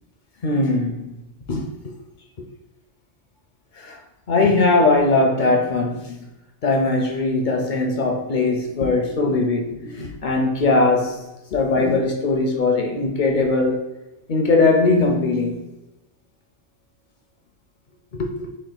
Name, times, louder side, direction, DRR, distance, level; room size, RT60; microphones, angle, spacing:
voice 1, 0.4-1.1 1.5-1.9 2.4-2.5 3.8-4.0 4.3-6.3 6.6-13.9 14.3-15.7 18.1-18.5, left 3 dB, 55° left, 0.5 m, -20 dB
3.4 x 2.6 x 3.8 m
omnidirectional pair, 1.2 m